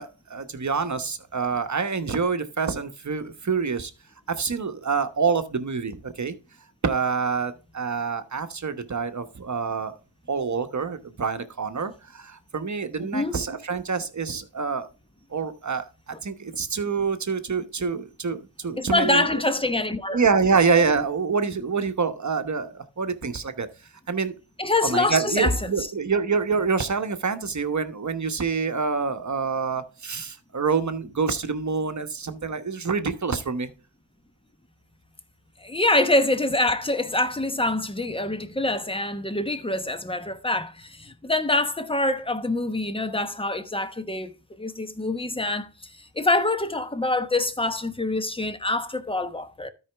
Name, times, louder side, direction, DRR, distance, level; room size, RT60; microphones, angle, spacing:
voice 1, 0.0-3.9 4.3-6.4 6.8-10.0 10.3-14.9 15.3-19.4 20.1-23.7 24.1-24.3 24.8-33.7, right 5 dB, 40° right, 1.1 m, -26 dB
voice 2, 18.8-20.2 24.6-25.5 35.6-49.7, left 2 dB, 10° left, 1.0 m, -25 dB
13.0 x 5.0 x 3.4 m
cardioid pair, 55°, 43 cm